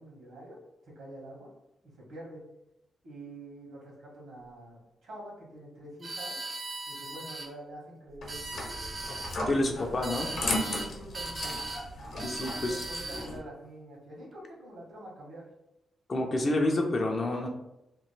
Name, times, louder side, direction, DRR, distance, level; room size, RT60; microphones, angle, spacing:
voice 1, 0.0-1.5 1.8-2.4 3.0-6.4 6.9-9.0 9.4-10.2 10.7-11.6 12.7-15.5, right 1 dB, 70° right, -3 dB, 1.4 m, -46 dB
sound 1, 6.0-7.5 8.1-9.4 10.0-10.9 11.1-11.9 12.2-13.3, right 2 dB, 35° right, 0.5 m, -38 dB
sound 2, 8.2-13.4, left 1 dB, 60° left, 0.8 m, -36 dB
voice 2, 9.5-10.3 12.2-12.8 16.1-17.5, left 1 dB, 35° left, 1 dB, 0.4 m, -28 dB
3.0 x 2.5 x 3.2 m, 0.87 s
wide cardioid pair, 130°, 0 cm